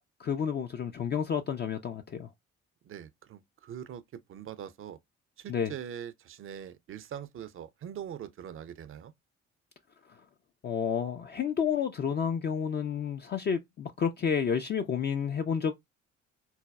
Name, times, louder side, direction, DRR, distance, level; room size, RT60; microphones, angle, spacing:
voice 1, 0.2-2.3 5.5-5.7 10.6-15.7, left 7 dB, 30° left, 0.4 m, -30 dB
voice 2, 2.8-5.0 5.4-9.1, right 9 dB, 40° right, 0.5 m, -42 dB
4.0 x 2.2 x 2.2 m
hypercardioid pair, 45°, 35 cm